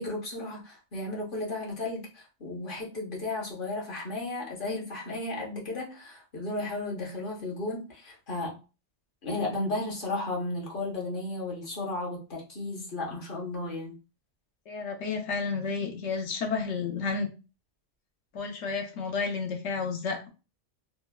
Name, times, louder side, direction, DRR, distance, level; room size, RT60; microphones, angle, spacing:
voice 1, 0.0-8.6 9.2-13.9, left 2 dB, 50° left, 1.0 m, -34 dB
voice 2, 14.7-17.3 18.3-20.3, left 5 dB, 75° left, 1.0 m, -31 dB
3.2 x 2.1 x 2.2 m
omnidirectional pair, 1.2 m